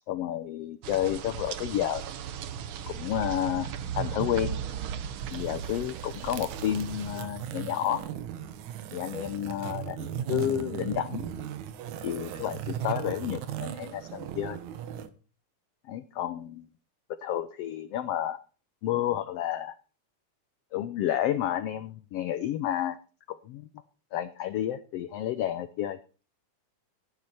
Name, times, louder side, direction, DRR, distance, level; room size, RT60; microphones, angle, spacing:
voice 1, 0.1-2.0 2.9-3.7 3.9-4.6 5.3-8.0 8.9-11.3 12.0-14.6 15.9-16.7 17.2-18.4 18.8-19.7 20.7-23.0 23.3-23.6 24.1-26.0, left 11 dB, 90° left, 13 dB, 1.3 m, -30 dB
sound 1, 0.8-7.2, right 9 dB, 90° right, 1.1 m, -36 dB
sound 2, 5.2-15.1, right 10 dB, 70° right, 2.3 m, -37 dB
15.0 x 9.8 x 4.2 m, 0.36 s
omnidirectional pair, 3.6 m